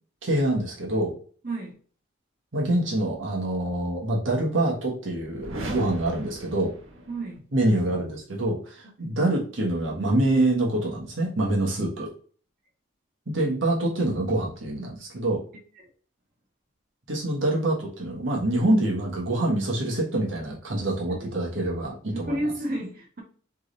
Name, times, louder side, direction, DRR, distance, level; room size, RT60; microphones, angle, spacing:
voice 1, 0.2-1.1 2.5-6.7 7.5-12.1 13.3-15.4 17.1-22.4, right 1 dB, 70° right, 1.3 m, -25 dB
sound 1, 5.4-7.4, right 1 dB, 90° right, 0.9 m, -37 dB
voice 2, 7.1-7.4 8.8-9.1 21.2-21.3 22.1-23.2, right 1 dB, 45° right, 1.2 m, -31 dB
3.6 x 3.2 x 3.9 m
head